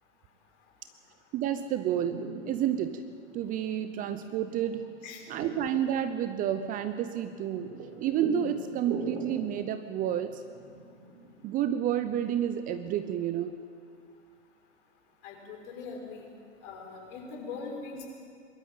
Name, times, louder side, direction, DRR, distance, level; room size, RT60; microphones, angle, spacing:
voice 1, 1.3-3.1 3.3-4.9 5.3-7.7 8.0-10.4 11.4-13.6, right 10 dB, 25° right, 11 dB, 0.7 m, -30 dB
sound 1, 1.6-11.4, right 3 dB, 40° right, 4.7 m, -43 dB
voice 2, 15.2-16.3 16.6-18.1, left 4 dB, 45° left, 0 dB, 5.9 m, -41 dB
23.0 x 13.0 x 9.1 m, 2.3 s
hypercardioid pair, 110°, 35 cm